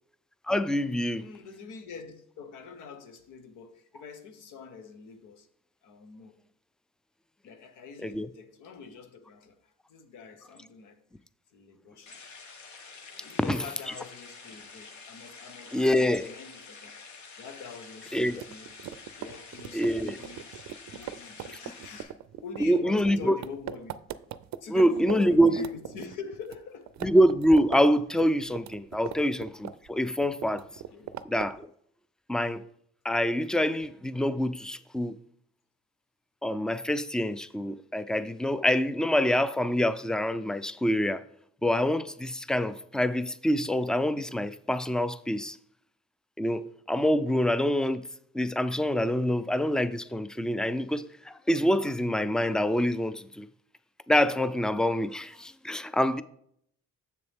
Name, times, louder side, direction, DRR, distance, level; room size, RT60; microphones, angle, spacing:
voice 1, 0.5-1.2 8.0-8.3 13.5-13.6 15.7-16.3 18.1-18.4 19.7-20.2 22.6-23.3 24.7-25.6 27.0-30.7 31.3-31.7 32.3-32.6 33.0-35.2 36.4-41.2 41.6-45.6 46.4-48.0 48.3-53.5 54.1-56.2, equal, ahead, 0.3 m, -26 dB
voice 2, 1.1-5.5 5.8-6.4 7.4-11.0 11.5-12.2 13.2-17.0 17.4-18.7 19.1-20.5 20.9-24.0 24.6-27.1 29.0-29.1 30.9-31.1, left 5 dB, 90° left, 1.1 m, -44 dB
sound 1, 12.1-22.0, left 4 dB, 70° left, 1.4 m, -48 dB
sound 2, 18.3-25.2 25.5-26.6 26.9-27.8 28.1-29.9 30.2-31.6, right 11 dB, 65° right, 0.5 m, -40 dB
7.0 x 6.8 x 3.5 m
cardioid pair, 90°, 30 cm